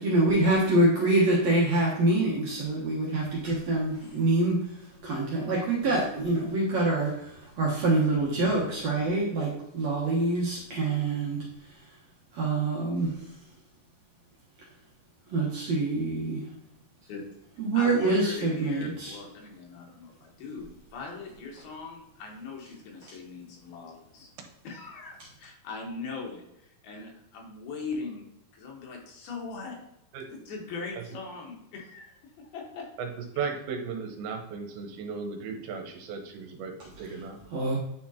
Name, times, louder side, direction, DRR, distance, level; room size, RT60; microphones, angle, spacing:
voice 1, 0.0-4.6 5.0-11.4 12.3-13.2 15.3-16.4 17.6-19.2 37.5-37.8, right 2 dB, 65° right, -5 dB, 1.8 m, -25 dB
voice 2, 17.7-24.3 24.6-28.3 28.5-29.8 30.3-32.9 33.4-33.5, left 4 dB, 75° left, 0 dB, 3.2 m, -40 dB
voice 3, 33.0-37.4, right 5 dB, 80° right, 3 dB, 2.7 m, -36 dB
9.3 x 4.4 x 2.8 m, 0.84 s
omnidirectional pair, 4.5 m